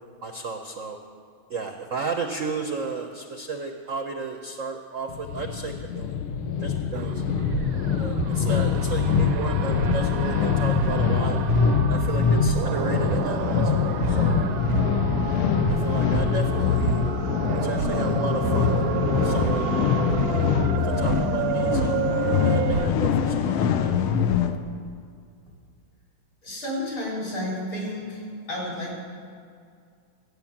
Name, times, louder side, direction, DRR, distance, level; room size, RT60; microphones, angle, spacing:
voice 1, 0.2-1.0 1.5-6.2 6.6-7.2 8.0-11.4 11.9-14.4 15.2-17.0 17.5-18.9 19.1-19.8 20.2-20.5 20.8-22.0 22.4-24.0, right 4 dB, 60° right, 4 dB, 0.8 m, -34 dB
sound 1, 5.1-24.6, left 7 dB, 85° left, 1.6 m, -24 dB
sound 2, 6.9-22.9, right 11 dB, 75° right, 1.3 m, -30 dB
voice 2, 26.4-28.2 28.5-29.0, left 1 dB, 65° left, -5 dB, 5.2 m, -31 dB
15.0 x 9.3 x 7.2 m, 2.2 s
omnidirectional pair, 2.3 m